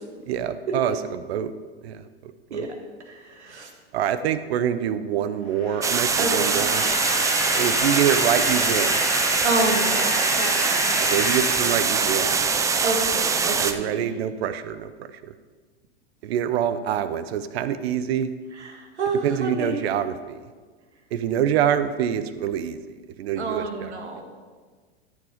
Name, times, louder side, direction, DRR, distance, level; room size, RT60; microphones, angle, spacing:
voice 1, 0.3-1.5 1.8-2.7 3.9-6.9 7.6-9.0 11.0-12.5 13.6-15.3 16.2-18.3 19.2-20.4 21.1-22.8 23.2-23.9, right 9 dB, 65° right, 12 dB, 0.8 m, -26 dB
voice 2, 3.1-3.7 6.2-6.7 9.4-10.9 12.8-14.1 18.6-19.7 23.4-24.2, right 2 dB, 90° right, 3 dB, 1.8 m, -29 dB
sound 1, 5.5-12.6, left 6 dB, 45° left, 1.9 m, -30 dB
sound 2, 5.8-13.7, right 5 dB, 10° right, 0.3 m, -23 dB
13.0 x 5.1 x 5.1 m, 1.5 s
hypercardioid pair, 110°, 33 cm